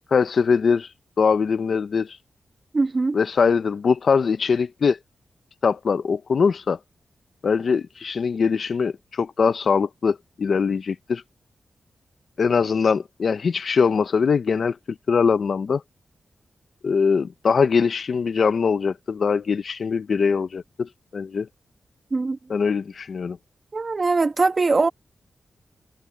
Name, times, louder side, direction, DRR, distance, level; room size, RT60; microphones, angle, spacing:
voice 1, 0.1-0.9 1.2-2.2 3.1-5.0 5.6-6.8 7.4-11.2 12.4-14.8 15.1-15.8 16.8-21.5 22.5-23.4, left 5 dB, 60° left, 0.6 m, -22 dB
voice 2, 2.7-3.2 22.1-22.4 23.7-24.9, right 3 dB, 35° right, 1.7 m, -21 dB
wide cardioid pair, 115°, 0 cm